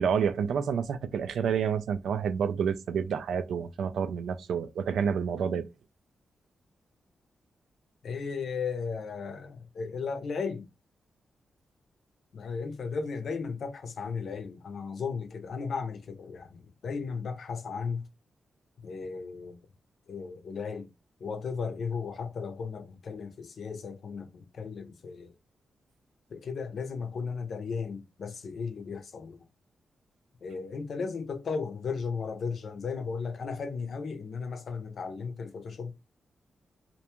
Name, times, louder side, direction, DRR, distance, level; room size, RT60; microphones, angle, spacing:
voice 1, 0.0-5.7, right 7 dB, 90° right, 0.3 m, -29 dB
voice 2, 8.0-10.7 12.3-18.0 18.8-19.6 20.1-20.9 21.2-25.3 26.3-29.4 30.4-35.9, left 5 dB, 65° left, 0.5 m, -35 dB
2.5 x 2.2 x 2.8 m
cardioid pair, 100°, 0 cm